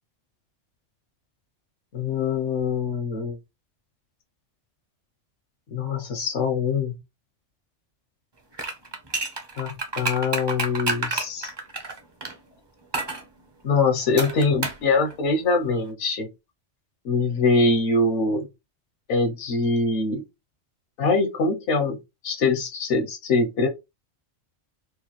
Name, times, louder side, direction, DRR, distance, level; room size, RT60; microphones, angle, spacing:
voice 1, 1.9-3.4 5.7-7.0 9.6-11.5 13.6-16.3 17.0-18.5 19.1-20.3 21.0-22.0 22.2-23.7, left 3 dB, 80° left, 1.0 m, -23 dB
sound 1, 8.5-12.3 12.9-13.2 14.2-14.9 15.1-15.2, right 3 dB, 30° right, 0.5 m, -29 dB
4.8 x 2.0 x 3.0 m
omnidirectional pair, 1.2 m